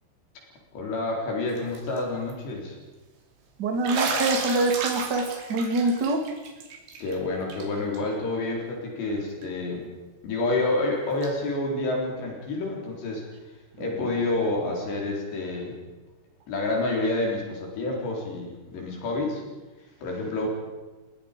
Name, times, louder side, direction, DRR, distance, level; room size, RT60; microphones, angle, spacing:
voice 1, 0.7-2.8 7.0-9.8 10.2-13.3 13.8-15.8 16.5-19.4 20.0-20.5, left 2 dB, 70° left, -1 dB, 6.3 m, -28 dB
Bathtub (filling or washing), 1.6-2.0 2.3-2.4 3.8-7.2 7.5-7.6 7.9-8.0 9.4-9.5 11.2-11.3, right 4 dB, 80° right, 5.2 m, -32 dB
voice 2, 3.6-6.2 13.8-14.1, right 2 dB, 30° right, 3 dB, 2.3 m, -25 dB
30.0 x 19.0 x 5.3 m, 1.2 s
omnidirectional pair, 5.2 m